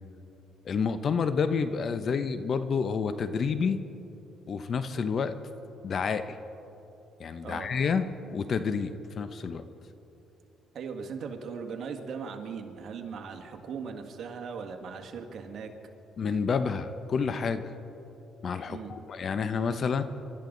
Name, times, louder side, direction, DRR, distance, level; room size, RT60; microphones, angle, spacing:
voice 1, 0.7-3.8 4.5-5.4 5.8-6.4 7.2-9.6 16.2-17.6 18.4-20.0, left 5 dB, 50° left, 11 dB, 0.9 m, -29 dB
voice 2, 10.7-15.7 18.7-18.9, right 5 dB, 60° right, 4 dB, 1.9 m, -38 dB
28.0 x 13.0 x 4.0 m, 2.9 s
cardioid pair, 85°, 0 cm